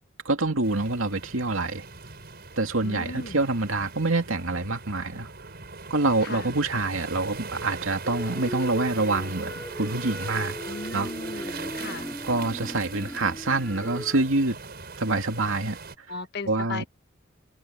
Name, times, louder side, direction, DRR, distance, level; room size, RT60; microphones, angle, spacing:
voice 1, 0.2-1.9 2.6-5.3 5.9-10.6 10.9-11.7 12.2-14.6 15.0-15.8 16.5-16.9, right 2 dB, 90° right, 2.6 m, -26 dB
sound 1, 0.6-15.9, right 4 dB, 50° right, 5.1 m, -40 dB
voice 2, 2.8-3.4 6.2-6.5 10.6-12.1 16.1-16.8, left 3 dB, 55° left, 1.2 m, -37 dB
sound 2, 8.0-14.3, equal, 10° left, 7.3 m, -38 dB
open air
head